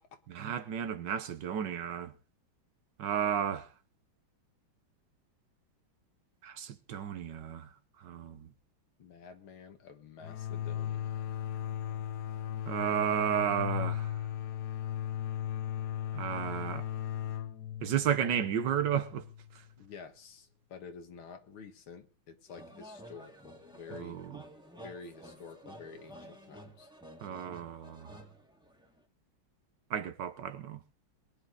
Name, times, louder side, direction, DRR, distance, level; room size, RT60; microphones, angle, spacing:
voice 1, 0.3-2.1 3.0-3.7 6.4-7.7 8.0-8.5 12.7-14.1 16.1-16.8 17.8-19.2 23.9-24.4 27.2-28.2 29.9-30.8, right 9 dB, 65° right, 1.5 m, -33 dB
voice 2, 9.0-11.2 19.8-24.2 24.8-26.9, left 5 dB, 85° left, 2.5 m, -50 dB
sound 1, 10.2-19.7, left 10 dB, 60° left, 1.2 m, -37 dB
sound 2, 22.5-29.0, right 1 dB, ahead, 1.8 m, -51 dB
21.5 x 10.0 x 3.9 m
omnidirectional pair, 2.2 m